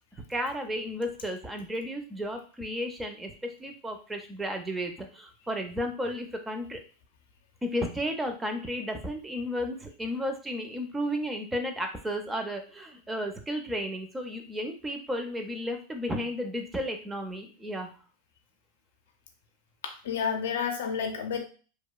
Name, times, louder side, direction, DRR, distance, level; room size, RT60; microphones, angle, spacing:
voice 1, 0.3-6.8 7.6-17.9, equal, 10° right, 4 dB, 0.5 m, -33 dB
voice 2, 19.8-21.4, left 7 dB, 70° left, 4 dB, 0.5 m, -30 dB
2.8 x 2.2 x 2.2 m, 0.38 s
hypercardioid pair, 95°, 0 cm